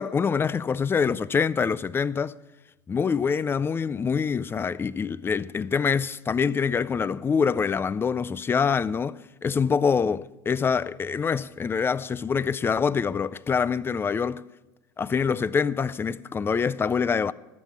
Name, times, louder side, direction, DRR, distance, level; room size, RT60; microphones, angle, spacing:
voice 1, 0.0-2.4 2.9-14.4 15.0-17.3, left 6 dB, 20° left, 0.4 m, -25 dB
13.5 x 7.4 x 7.0 m
supercardioid pair, 110°, 11 cm